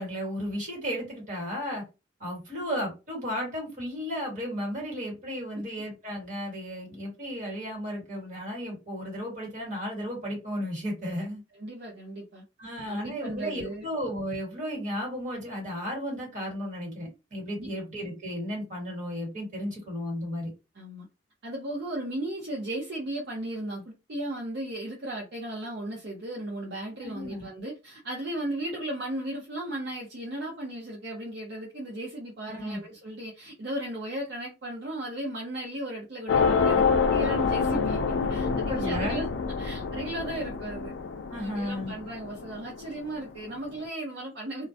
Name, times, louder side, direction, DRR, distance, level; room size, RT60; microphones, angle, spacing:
voice 1, 0.0-1.8 2.2-11.4 12.6-20.5 27.0-27.5 32.5-32.8 38.4-39.2 41.3-42.0, equal, 40° right, 1.3 m, -34 dB
voice 2, 11.5-12.4 12.9-13.9 17.6-17.7 20.7-21.1 21.4-39.3 39.6-40.9 41.4-44.7, right 1 dB, 60° right, 0.6 m, -36 dB
sound 1, 36.3-43.1, left 5 dB, 70° left, 0.4 m, -27 dB
2.2 x 2.1 x 2.6 m
head